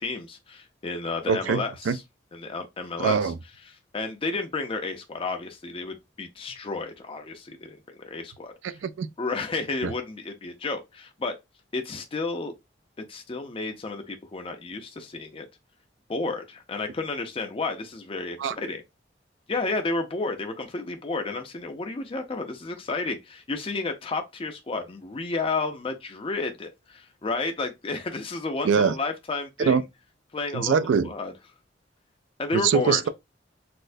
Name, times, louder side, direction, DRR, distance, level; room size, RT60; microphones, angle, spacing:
voice 1, 0.0-2.0 2.3-3.3 3.9-8.5 9.2-11.3 11.7-12.5 13.1-15.5 16.1-18.8 19.5-29.8 30.3-30.8 31.0-31.3 32.4-33.0, left 3 dB, 30° left, 0.4 m, -31 dB
voice 2, 1.3-2.0 3.0-3.4 8.6-9.1 9.8-9.9 18.4-18.6 28.6-29.0 29.6-29.8 30.5-31.1 32.5-33.1, right 6 dB, 80° right, 0.3 m, -23 dB
4.2 x 2.0 x 2.5 m
head